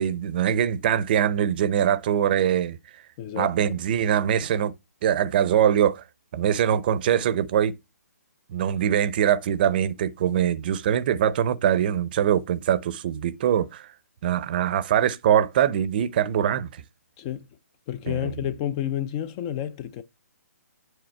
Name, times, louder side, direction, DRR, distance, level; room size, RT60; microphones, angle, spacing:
voice 1, 0.0-2.8 3.4-4.7 5.0-6.0 6.3-7.8 8.5-13.9 14.2-16.8 18.1-18.5, right 9 dB, 35° right, 0.6 m, -23 dB
voice 2, 3.2-3.8 17.2-17.5 17.9-20.0, left 11 dB, 20° left, 0.4 m, -30 dB
7.9 x 4.9 x 4.4 m
hypercardioid pair, 155°, 9 cm